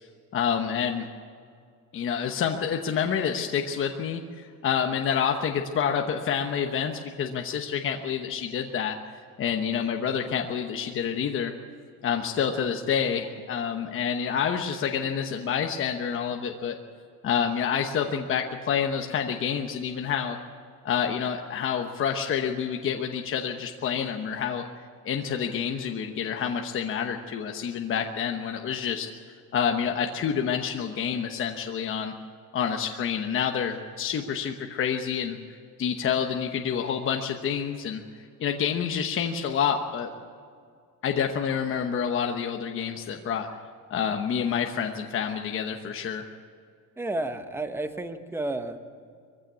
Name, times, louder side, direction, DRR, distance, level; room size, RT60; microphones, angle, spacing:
voice 1, 0.3-1.1 1.9-9.0 9.4-11.5 12.0-16.8 17.2-20.4 20.8-24.6 25.0-29.1 29.5-32.1 32.5-40.1 41.0-43.5 43.9-46.2, left 7 dB, 30° left, 4 dB, 1.1 m, -28 dB
voice 2, 47.0-48.8, right 2 dB, 5° right, 8 dB, 1.0 m, -31 dB
22.5 x 15.5 x 8.4 m, 2.2 s
cardioid pair, 170°, 39 cm